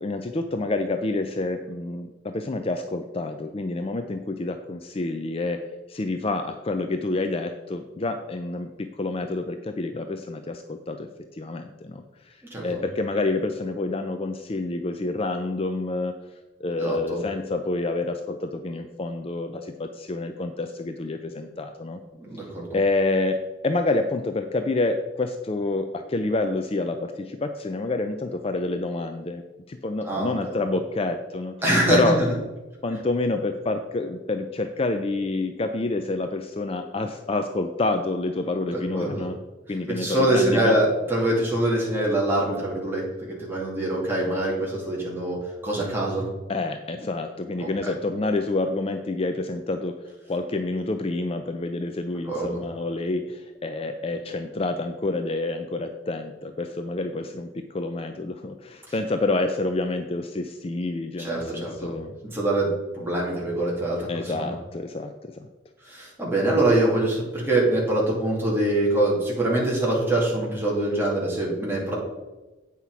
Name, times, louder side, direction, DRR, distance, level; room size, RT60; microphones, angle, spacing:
voice 1, 0.0-5.6 5.9-12.4 12.6-16.2 16.6-22.0 22.7-29.4 29.7-31.6 31.9-32.2 32.8-39.4 39.7-40.8 46.5-62.2 64.1-65.5, left 2 dB, 30° left, 7 dB, 0.4 m, -28 dB
voice 2, 16.8-17.2 22.2-22.7 30.0-30.3 31.6-32.3 38.7-39.3 39.9-45.4 45.6-46.3 47.6-47.9 52.3-52.6 61.2-62.0 62.3-62.7 62.9-64.5 65.9-71.9, right 1 dB, 10° right, -4 dB, 2.3 m, -24 dB
8.4 x 5.8 x 4.7 m, 1.1 s
head